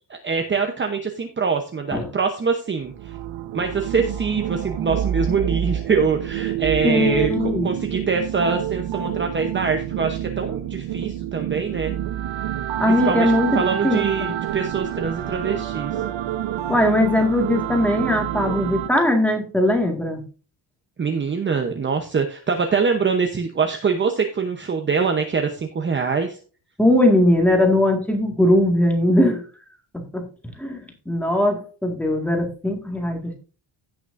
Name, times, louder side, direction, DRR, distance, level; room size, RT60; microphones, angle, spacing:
voice 1, 0.1-3.1 3.5-11.9 12.9-15.9 21.0-26.4, right 5 dB, 25° right, 4 dB, 0.9 m, -24 dB
sound 1, 2.8-18.9, right 11 dB, 85° right, 0.9 m, -27 dB
voice 2, 6.8-7.7 12.8-14.3 16.7-20.2 26.8-29.4 29.9-30.3 30.6-33.3, left 1 dB, 5° left, 2 dB, 1.9 m, -20 dB
16.0 x 6.1 x 2.6 m, 0.37 s
cardioid pair, 175°, 45 cm